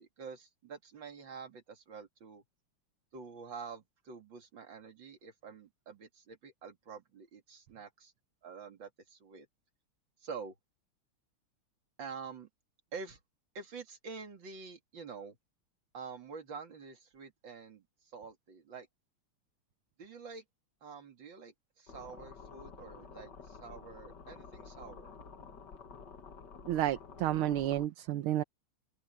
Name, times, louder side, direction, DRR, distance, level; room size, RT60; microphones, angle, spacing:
voice 1, 0.0-2.4 3.1-8.1 8.4-9.5 10.2-10.5 12.0-12.5 12.9-13.2 13.5-15.4 15.9-18.9 20.0-20.4 20.8-25.1, right 5 dB, 60° right, 3.1 m, -47 dB
sound 1, 21.9-27.9, left 5 dB, 55° left, 2.4 m, -51 dB
voice 2, 26.7-28.4, right 12 dB, 80° right, 1.7 m, -31 dB
open air
omnidirectional pair, 2.4 m